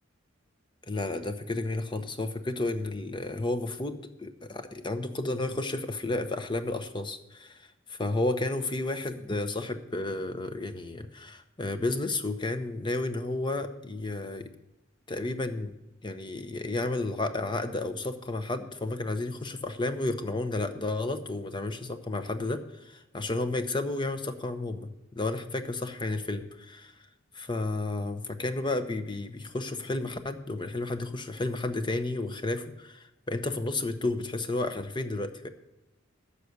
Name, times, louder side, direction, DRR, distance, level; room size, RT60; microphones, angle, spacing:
voice 1, 0.9-14.5 15.1-15.7 16.0-26.9 27.3-35.5, left 2 dB, 25° left, 9 dB, 0.8 m, -32 dB
9.8 x 6.6 x 8.2 m, 0.98 s
head